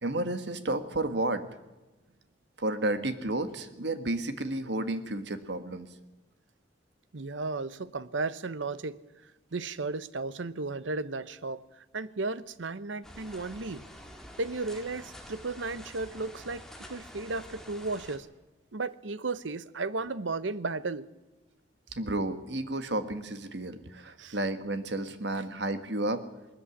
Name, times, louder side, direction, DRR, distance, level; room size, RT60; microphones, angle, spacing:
voice 1, 0.0-1.4 2.6-5.9 22.0-26.2, right 2 dB, 65° right, 1.6 m, -32 dB
voice 2, 7.1-9.0 9.5-13.8 14.4-16.6 16.9-18.3 18.7-21.1 24.2-24.4 25.4-25.5, right 3 dB, 90° right, 0.9 m, -34 dB
sound 1, 13.0-18.2, equal, 5° left, 2.0 m, -48 dB
19.5 x 14.0 x 9.8 m
head